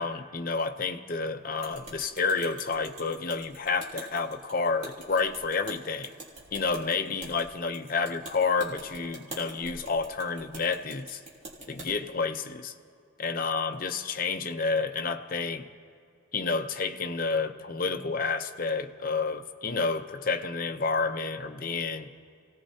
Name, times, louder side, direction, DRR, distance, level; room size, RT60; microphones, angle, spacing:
voice 1, 0.0-6.1 6.5-11.2 11.7-12.7 13.2-15.7 16.3-22.1, left 4 dB, 45° left, 7 dB, 0.6 m, -30 dB
sound 1, 1.6-11.9, right 2 dB, 35° right, 3.1 m, -45 dB
29.5 x 17.5 x 2.8 m, 2.3 s
head